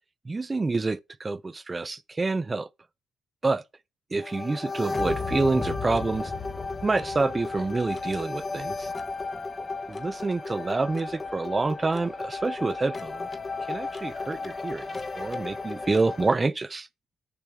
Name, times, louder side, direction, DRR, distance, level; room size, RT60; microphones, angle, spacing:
voice 1, 0.2-2.7 3.4-3.6 4.1-6.3 6.8-8.9 9.9-13.3 13.7-16.9, right 3 dB, 25° right, 0.6 m, -27 dB
sound 1, 4.2-16.4, left 3 dB, 30° left, 1.0 m, -34 dB
6.9 x 6.4 x 4.6 m
cardioid pair, 90°, 0 cm